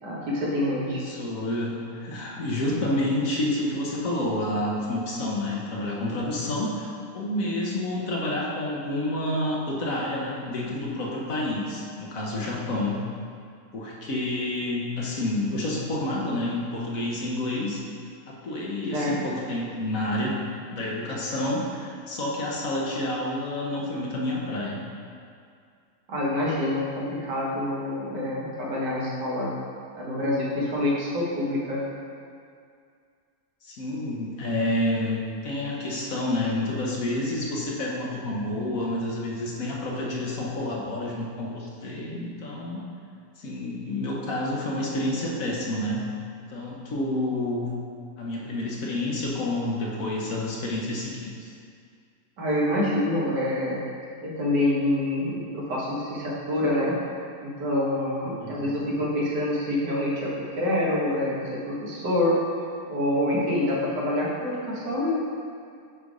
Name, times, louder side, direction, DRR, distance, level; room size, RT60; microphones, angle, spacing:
voice 1, 0.0-1.0 18.9-19.1 26.1-29.5 30.0-31.8 52.4-53.8 54.2-56.9 57.4-62.4 62.9-65.2, left 1 dB, 80° right, -5 dB, 2.0 m, -26 dB
voice 2, 0.8-6.9 7.1-13.0 13.7-17.8 18.3-20.4 20.7-24.8 33.6-42.8 43.4-46.0 46.5-47.7 48.2-51.5 58.4-58.8, left 1 dB, 60° left, -3 dB, 1.3 m, -29 dB
8.3 x 3.4 x 5.1 m, 2.3 s
omnidirectional pair, 1.8 m